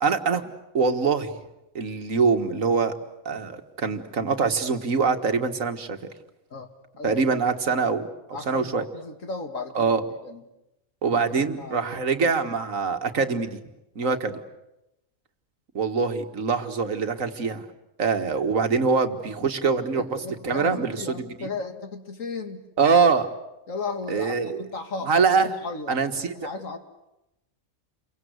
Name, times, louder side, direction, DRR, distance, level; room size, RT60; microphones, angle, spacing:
voice 1, 0.0-1.3 1.8-2.9 3.3-6.0 7.0-8.8 9.8-10.0 11.0-13.6 14.0-14.4 15.8-17.6 18.0-21.5 22.8-23.3 24.1-24.6 25.1-25.5 25.9-26.5, right 5 dB, 80° right, 7 dB, 2.0 m, -24 dB
voice 2, 8.3-10.0 10.2-10.4 11.1-11.2 11.4-11.9 14.0-14.2 20.0-22.7 23.7-25.1 25.4-25.9 26.3-26.8, left 4 dB, 75° left, 7 dB, 2.5 m, -35 dB
29.5 x 24.0 x 8.1 m, 0.91 s
omnidirectional pair, 1.4 m